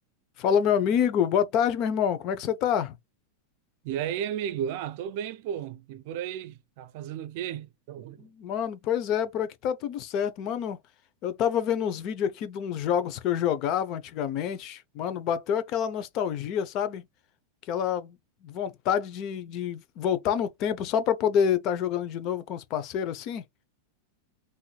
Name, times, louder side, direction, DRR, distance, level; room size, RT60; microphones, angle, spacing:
voice 1, 0.4-3.0 8.2-10.8 11.2-17.0 17.7-18.2 18.4-23.4, left 8 dB, 45° left, 0.7 m, -27 dB
voice 2, 3.8-8.3, right 9 dB, 60° right, 0.6 m, -34 dB
3.9 x 2.6 x 2.3 m
hypercardioid pair, 120°, 0 cm